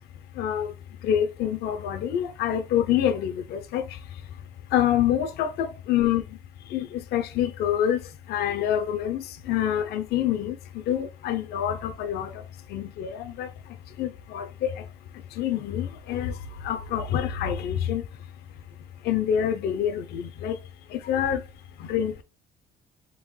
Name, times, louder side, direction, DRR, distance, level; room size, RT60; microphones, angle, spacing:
voice 1, 0.4-0.7 1.0-3.8 4.7-6.2 6.7-8.0 8.3-10.5 10.9-12.3 12.7-13.5 14.0-14.7 15.4-16.3 16.6-18.0 19.1-20.6 20.9-21.4 21.9-22.2, left 10 dB, 70° left, 0.6 m, -26 dB
3.8 x 3.4 x 3.1 m
cardioid pair, 110°, 17 cm